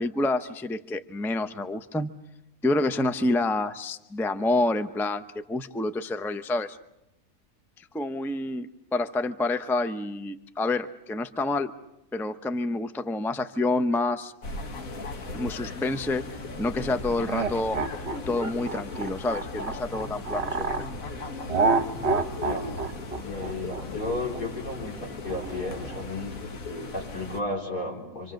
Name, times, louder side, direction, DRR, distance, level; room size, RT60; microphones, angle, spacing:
voice 1, 0.0-2.1 2.6-5.2 5.5-6.8 7.8-11.7 12.1-14.3 15.3-16.2 16.6-17.8 18.3-20.8, left 2 dB, ahead, 9 dB, 0.5 m, -28 dB
sound 1, 14.4-27.4, left 2 dB, 60° left, 1.9 m, -37 dB
sound 2, 17.2-20.9 21.5-26.0, right 4 dB, 45° right, 1.3 m, -28 dB
voice 2, 22.3-22.7 23.1-26.4 26.9-28.3, left 2 dB, 85° left, -2 dB, 5.1 m, -33 dB
27.5 x 26.0 x 6.5 m, 0.85 s
omnidirectional pair, 1.6 m